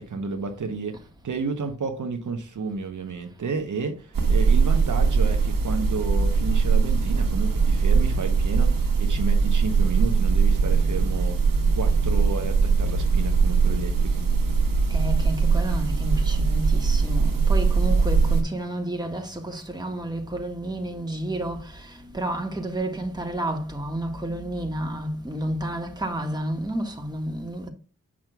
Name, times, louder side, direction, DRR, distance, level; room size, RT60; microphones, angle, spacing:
voice 1, 0.0-11.4 11.8-14.3, right 4 dB, 65° right, 0.9 m, -31 dB
sound 1, 4.1-18.4, right 5 dB, 85° right, 1.3 m, -21 dB
voice 2, 14.9-27.7, right 1 dB, 10° right, 1.5 m, -31 dB
7.3 x 5.9 x 2.3 m
cardioid pair, 50°, 33 cm